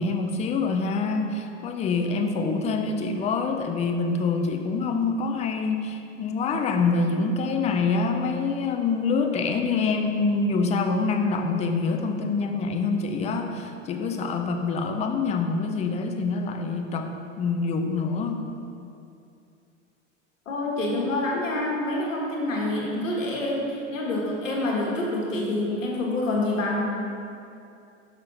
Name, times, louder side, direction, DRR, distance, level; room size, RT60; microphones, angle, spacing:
voice 1, 0.0-18.4, left 4 dB, 20° left, 5 dB, 0.4 m, -26 dB
voice 2, 20.5-26.9, left 1 dB, 85° left, -3 dB, 1.4 m, -27 dB
5.8 x 5.7 x 3.8 m, 2.6 s
hypercardioid pair, 90°, 38 cm